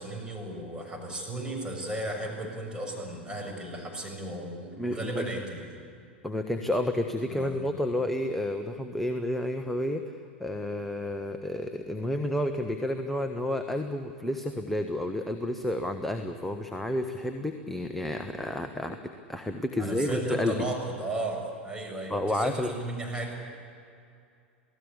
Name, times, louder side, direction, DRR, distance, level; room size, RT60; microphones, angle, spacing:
voice 1, 0.0-5.7 7.3-7.6 19.8-23.3, right 2 dB, 15° right, 1 dB, 7.2 m, -35 dB
voice 2, 4.8-5.2 6.2-20.5 22.1-22.7, left 1 dB, 5° left, 6 dB, 1.3 m, -30 dB
28.5 x 18.0 x 8.6 m, 2.4 s
figure-of-eight pair, 90°, 6 cm